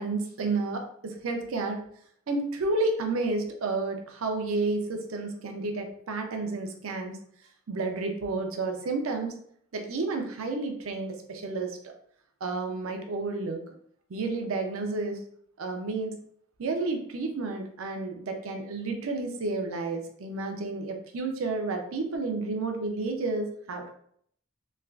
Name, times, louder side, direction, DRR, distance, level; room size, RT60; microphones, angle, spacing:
voice 1, 0.0-1.8 2.3-7.2 7.7-9.3 9.7-11.9 12.4-13.7 14.1-15.2 15.6-16.2 16.6-23.8, right 3 dB, 90° right, 4 dB, 0.5 m, -31 dB
3.2 x 2.3 x 2.3 m, 0.64 s
head